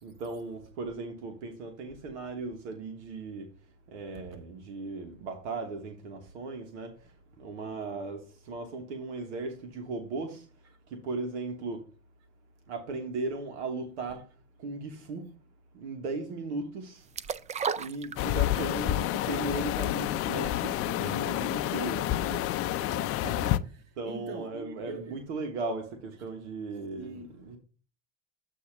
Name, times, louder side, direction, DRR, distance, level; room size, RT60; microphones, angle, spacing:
voice 1, 0.0-3.5 3.9-6.9 7.4-10.4 10.9-11.8 12.7-14.2 14.6-15.3 15.7-17.1 17.8-22.5 24.0-27.6, right 3 dB, 80° right, 1.3 m, -37 dB
sound 1, 17.2-18.7 19.1-19.2, right 6 dB, 20° right, 0.4 m, -33 dB
sound 2, 18.2-23.6, left 14 dB, 40° left, 0.5 m, -29 dB
voice 2, 22.8-25.2 27.0-27.4, right 4 dB, 45° right, 2.1 m, -44 dB
8.2 x 2.8 x 6.0 m
hypercardioid pair, 90°, 34 cm